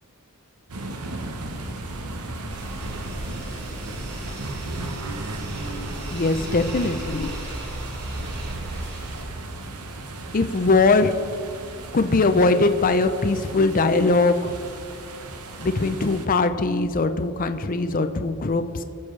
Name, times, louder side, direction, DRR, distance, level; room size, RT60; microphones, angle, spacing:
sound 1, 0.7-16.3, right 2 dB, 85° right, 1.0 m, -35 dB
sound 2, 2.5-9.2, right 1 dB, 50° right, 2.2 m, -38 dB
voice 1, 6.1-7.3 10.3-11.1 11.9-14.6 15.6-18.8, left 3 dB, 40° left, 9 dB, 0.5 m, -21 dB
19.5 x 7.0 x 3.2 m, 2.5 s
head